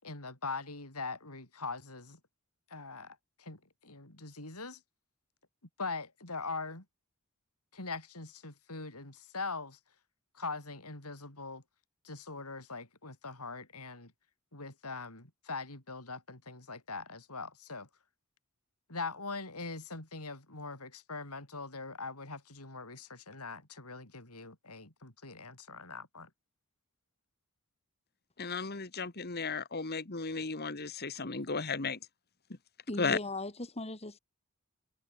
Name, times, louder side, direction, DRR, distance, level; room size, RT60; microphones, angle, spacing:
voice 1, 0.0-2.2 2.7-4.8 5.8-6.8 7.7-9.8 10.3-11.6 12.0-14.1 14.5-17.9 18.9-26.3, left 3 dB, 90° left, 6.6 m, -42 dB
voice 2, 28.4-32.0 33.0-33.2, left 4 dB, 45° left, 1.6 m, -34 dB
voice 3, 32.9-34.2, left 2 dB, 30° left, 2.7 m, -38 dB
head